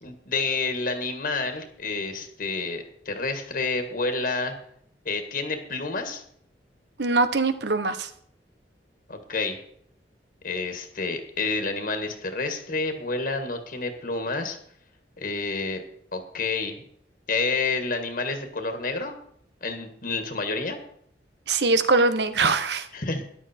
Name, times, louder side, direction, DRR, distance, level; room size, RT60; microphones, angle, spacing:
voice 1, 0.0-4.5 5.1-6.2 9.1-9.6 10.4-14.6 15.2-15.8 16.1-16.8 17.3-19.2 19.6-20.8 22.9-23.3, left 3 dB, 55° left, 6 dB, 1.8 m, -29 dB
voice 2, 7.0-8.1 21.5-22.9, right 3 dB, 70° right, 11 dB, 1.0 m, -22 dB
14.0 x 11.0 x 4.4 m, 0.67 s
head